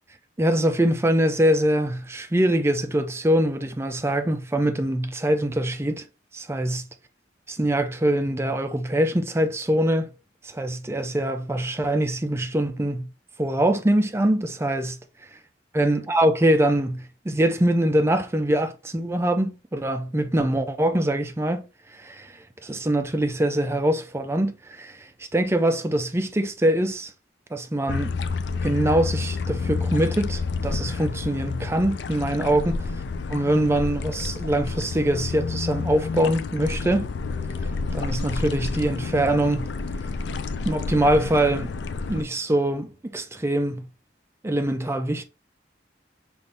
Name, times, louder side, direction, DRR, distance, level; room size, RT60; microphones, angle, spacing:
voice 1, 0.4-6.1 6.3-6.8 7.5-10.1 10.4-13.0 13.4-15.0 15.3-15.4 15.7-21.6 21.9-27.1 27.5-28.1 28.6-32.9 33.3-37.1 37.9-39.7 40.6-41.7 42.1-43.8 44.4-45.2, right 1 dB, 15° right, 0.3 m, -23 dB
sound 1, 27.9-42.2, left 4 dB, 65° left, 0.4 m, -29 dB
5.4 x 2.5 x 3.3 m
head